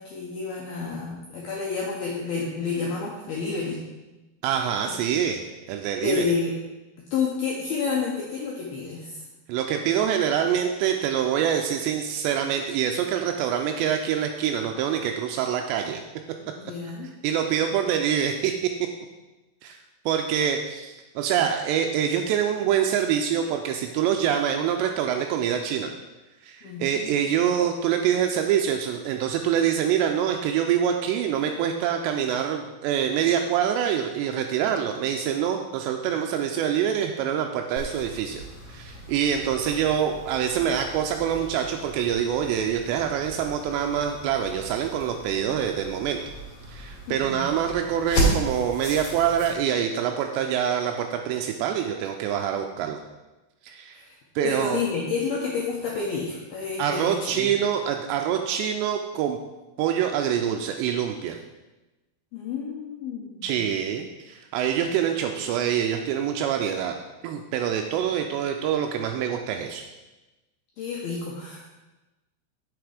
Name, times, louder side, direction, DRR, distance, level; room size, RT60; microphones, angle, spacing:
voice 1, 0.0-3.8 4.9-5.0 6.0-6.6 7.1-9.2 16.4-17.1 26.6-27.1 47.1-47.5 53.9-54.2 54.4-57.5 62.3-63.6 70.8-71.7, left 5 dB, 75° left, -3 dB, 2.3 m, -30 dB
voice 2, 4.4-5.4 5.7-6.3 9.5-16.0 17.2-18.7 19.6-19.8 20.1-25.9 26.4-38.4 38.7-46.2 46.7-53.0 53.6-54.0 54.4-54.8 56.8-59.4 59.8-61.4 63.4-66.9 67.2-69.8, right 9 dB, 90° right, 4 dB, 2.4 m, -25 dB
sound 1, 37.8-49.5, right 1 dB, 45° left, 3.5 m, -34 dB
7.9 x 6.8 x 5.0 m, 1.1 s
omnidirectional pair, 5.6 m